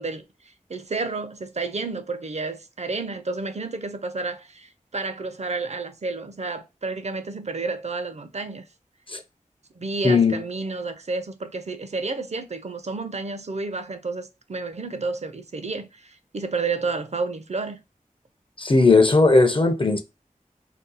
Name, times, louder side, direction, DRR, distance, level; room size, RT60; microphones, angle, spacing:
voice 1, 0.0-8.7 9.8-17.8, right 3 dB, 50° right, 0.5 m, -31 dB
voice 2, 10.0-10.4 18.6-20.0, left 3 dB, 35° left, 0.5 m, -17 dB
2.7 x 2.2 x 3.8 m
wide cardioid pair, 50°, 14 cm